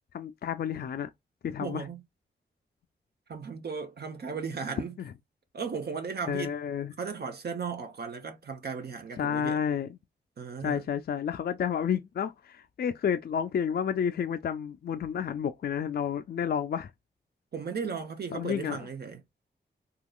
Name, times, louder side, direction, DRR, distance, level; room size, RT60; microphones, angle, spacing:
voice 1, 0.1-1.1 1.4-1.9 5.0-5.1 6.3-6.9 9.2-10.0 10.6-16.9 18.3-18.8, left 8 dB, 55° left, 0.4 m, -30 dB
voice 2, 1.6-2.0 3.3-4.9 5.5-6.5 7.0-9.6 10.4-10.8 17.5-19.2, right 5 dB, 60° right, 0.7 m, -36 dB
3.7 x 2.8 x 2.2 m
wide cardioid pair, 85°, 19 cm